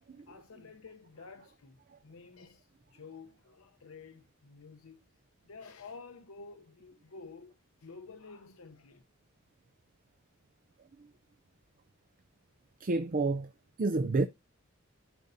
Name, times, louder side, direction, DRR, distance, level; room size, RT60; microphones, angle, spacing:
voice 1, 0.3-1.8 2.0-5.1 5.4-9.0, left 4 dB, 85° left, 0.8 m, -51 dB
voice 2, 12.8-13.5 13.8-14.3, right 3 dB, 40° right, 0.5 m, -29 dB
13.5 x 5.4 x 2.6 m
head